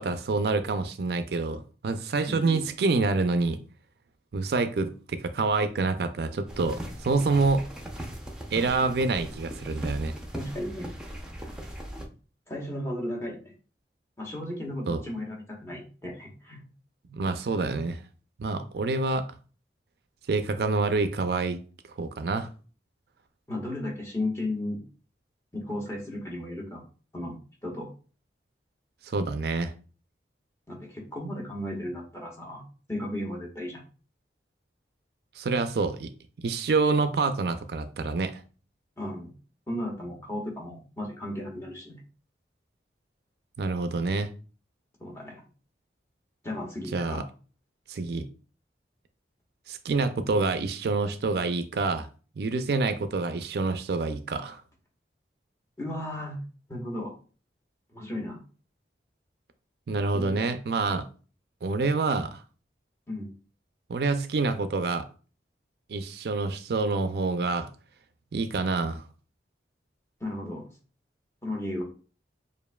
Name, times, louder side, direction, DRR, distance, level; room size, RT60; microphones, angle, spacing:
voice 1, 0.0-3.6 4.3-7.7 8.5-10.1 14.9-15.0 17.1-18.0 18.4-19.3 20.3-21.6 22.0-22.5 29.0-29.7 35.4-36.1 36.4-38.4 43.6-44.3 46.9-47.2 47.9-48.3 49.7-52.1 52.4-54.6 59.9-61.1 61.6-62.4 63.9-65.1 65.9-67.7 68.3-69.0, right 3 dB, 65° right, 0.4 m, -27 dB
voice 2, 2.3-2.6 8.8-9.0 10.3-11.0 12.5-13.5 14.2-16.6 23.5-24.8 25.5-26.8 27.1-27.9 30.7-32.6 32.9-33.8 39.0-39.3 39.7-41.9 45.0-45.4 46.4-47.3 55.8-56.4 56.7-57.1 57.9-58.4 60.1-60.9 63.1-63.3 70.2-70.7 71.4-71.8, left 1 dB, 15° left, 1.1 m, -35 dB
sound 1, 6.5-12.1, equal, 5° right, 0.6 m, -39 dB
6.8 x 2.6 x 2.3 m
head